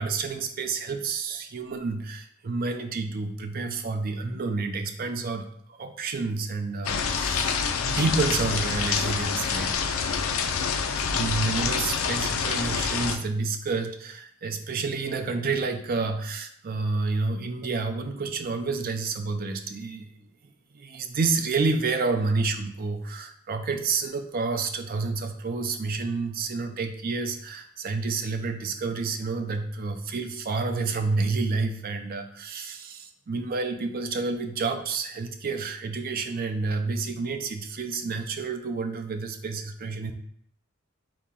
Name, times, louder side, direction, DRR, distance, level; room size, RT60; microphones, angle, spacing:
voice 1, 0.0-9.9 11.1-20.1 20.7-40.1, right 4 dB, 45° right, 6 dB, 0.4 m, -29 dB
sound 1, 6.8-13.2, left 6 dB, 80° left, 0.4 m, -27 dB
4.0 x 2.8 x 3.6 m, 0.67 s
head